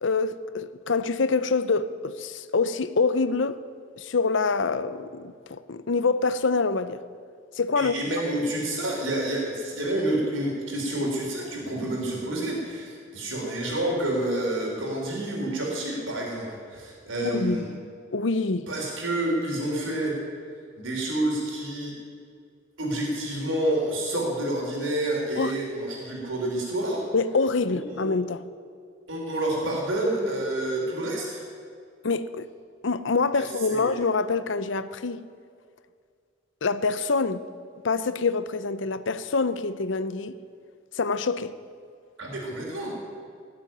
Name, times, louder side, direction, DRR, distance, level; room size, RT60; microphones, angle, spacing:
voice 1, 0.0-3.6 4.0-7.0 7.6-8.0 17.2-17.8 18.1-18.7 25.4-25.5 27.1-28.4 32.0-32.5 32.8-35.3 36.6-37.4 37.8-40.4 40.9-41.5, left 4 dB, 70° left, 0.7 m, -26 dB
voice 2, 7.8-17.7 18.7-20.2 20.8-21.9 22.8-27.0 27.7-28.1 29.1-31.4 33.3-33.9 42.2-43.0, right 1 dB, 85° right, 4.1 m, -28 dB
18.0 x 7.9 x 9.2 m
head